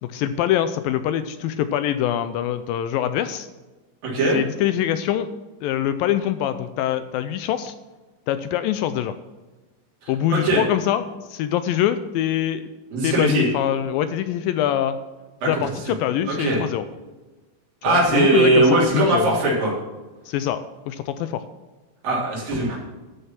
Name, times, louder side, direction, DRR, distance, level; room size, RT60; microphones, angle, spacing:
voice 1, 0.0-3.5 4.3-5.3 5.6-7.7 8.3-9.2 10.1-11.0 11.3-12.7 13.0-15.0 15.5-16.8 17.9-19.4 20.3-20.6 20.9-21.4, left 11 dB, 80° left, 11 dB, 2.2 m, -24 dB
voice 2, 4.0-4.4 10.0-10.6 12.9-13.4 15.4-15.5 16.3-16.6 17.8-19.7 22.0-22.8, right 2 dB, 65° right, -4 dB, 5.0 m, -20 dB
12.5 x 6.7 x 5.9 m, 1.2 s
omnidirectional pair, 4.3 m